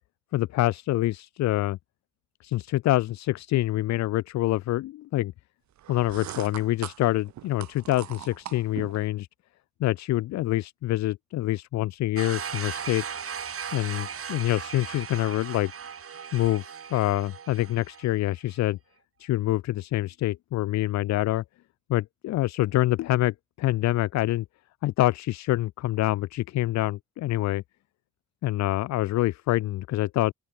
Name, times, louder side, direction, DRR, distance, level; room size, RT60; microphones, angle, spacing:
voice 1, 0.3-1.8 2.4-5.3 5.9-9.3 9.8-13.0 13.7-15.7 16.3-18.8 19.2-21.4 21.9-24.4 24.8-27.6 28.4-30.3, left 15 dB, 65° left, 0.5 m, -26 dB
sound 1, 5.8-9.1, right 12 dB, 65° right, 1.5 m, -41 dB
sound 2, 12.2-18.1, right 7 dB, 50° right, 4.9 m, -37 dB
open air
cardioid pair, 90°, 30 cm